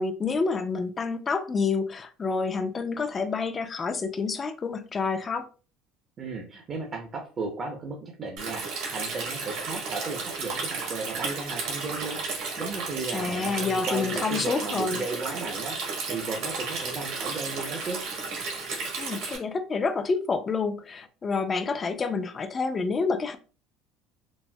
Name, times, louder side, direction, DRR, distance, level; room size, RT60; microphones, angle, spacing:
voice 1, 0.0-5.5 13.1-15.0 19.0-23.4, left 4 dB, 25° left, 0.4 m, -28 dB
voice 2, 6.2-18.0, right 3 dB, 35° right, 0.6 m, -35 dB
Stream, 8.4-19.4, right 4 dB, 70° right, 1.3 m, -33 dB
4.0 x 2.0 x 2.2 m
cardioid pair, 120°, 0 cm